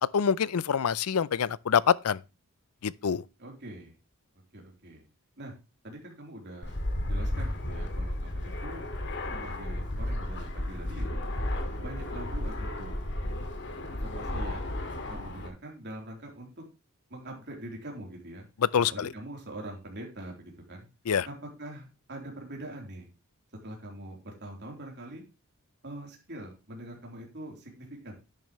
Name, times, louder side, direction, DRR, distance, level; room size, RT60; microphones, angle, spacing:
voice 1, 0.1-2.2 2.8-3.2 18.7-19.1 21.1-21.3, left 7 dB, 80° left, 0.5 m, -26 dB
voice 2, 3.4-3.9 4.5-5.1 5.4-5.5 5.8-6.8 7.1-8.9 9.3-11.2 11.8-13.4 14.1-14.7 15.1-16.6 17.1-18.5 18.9-20.9 21.3-23.1 23.6-25.2 25.8-28.2, right 1 dB, 50° right, 3.6 m, -43 dB
Fixed-wing aircraft airplane, 6.6-15.5, left 1 dB, 55° left, 2.1 m, -33 dB
11.0 x 8.9 x 3.1 m
head